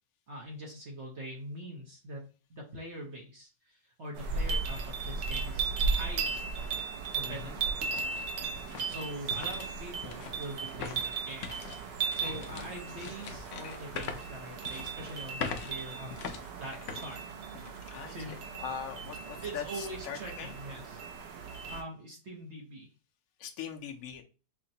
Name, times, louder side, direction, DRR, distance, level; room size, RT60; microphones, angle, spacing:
voice 1, 0.3-2.2 2.5-6.4 7.1-7.8 8.9-11.5 11.8-16.2 16.6-17.2 18.1-18.4 19.4-21.1 21.7-22.9, right 1 dB, 50° right, -1 dB, 0.9 m, -43 dB
sound 1, 4.2-21.8, right 4 dB, 80° right, 1.3 m, -36 dB
sound 2, 6.4-6.5 7.0-17.9 18.3-18.4 19.0-19.3, left 6 dB, 80° left, 0.6 m, -43 dB
voice 2, 7.2-7.6 12.3-12.7 17.9-20.5 23.4-24.2, left 8 dB, 65° left, 3 dB, 1.0 m, -42 dB
5.7 x 2.1 x 2.7 m, 0.35 s
omnidirectional pair, 1.9 m